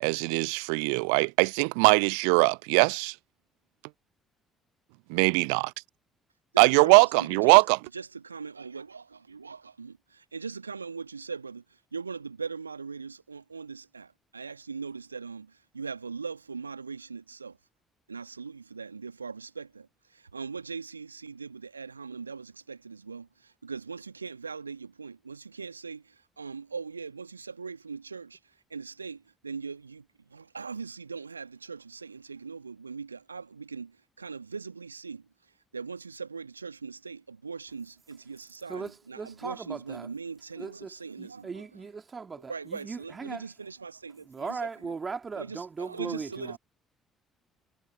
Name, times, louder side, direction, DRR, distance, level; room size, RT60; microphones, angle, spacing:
voice 1, 0.0-3.1 5.1-5.7 6.6-7.8, right 40 dB or more, 65° right, 0.5 m, -21 dB
voice 2, 6.5-7.6 7.9-11.6 11.9-17.6 18.1-35.3 35.7-41.9 42.5-45.0 45.3-46.6, right 5 dB, 85° right, 1.5 m, -40 dB
voice 3, 38.7-40.1 40.6-43.4 44.3-46.6, right 5 dB, 30° right, 2.2 m, -38 dB
figure-of-eight pair, 50°, 0 cm